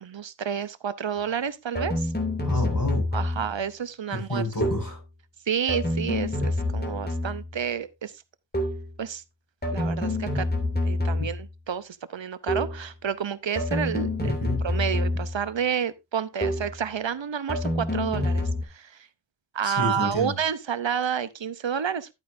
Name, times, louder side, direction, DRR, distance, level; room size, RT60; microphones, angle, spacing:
voice 1, 0.0-2.1 3.1-4.4 5.5-8.1 9.0-9.2 9.7-10.5 10.8-14.4 14.6-19.1 19.5-22.1, right 8 dB, 75° right, 0.8 m, -30 dB
sound 1, 1.8-3.6 4.6-5.0 5.7-7.6 8.5-9.0 9.6-11.5 12.5-12.9 13.6-15.5 16.4-16.8 17.5-18.6, left 1 dB, 20° left, 2.6 m, -27 dB
voice 2, 2.4-3.0 4.1-5.0 14.2-14.6 19.6-20.3, left 1 dB, 45° left, 6.1 m, -29 dB
11.0 x 8.6 x 2.6 m
wide cardioid pair, 45°, 45 cm